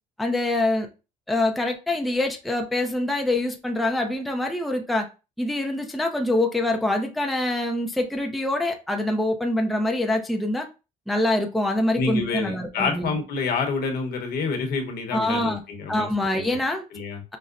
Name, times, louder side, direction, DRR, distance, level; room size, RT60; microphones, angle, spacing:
voice 1, 0.2-0.9 1.3-5.1 5.4-10.7 11.1-13.2 15.1-15.6 15.9-16.8, left 1 dB, ahead, 0.5 m, -25 dB
voice 2, 12.0-16.6 16.9-17.2, left 4 dB, 65° left, 0.9 m, -28 dB
5.4 x 2.1 x 2.4 m
cardioid pair, 110°, 17 cm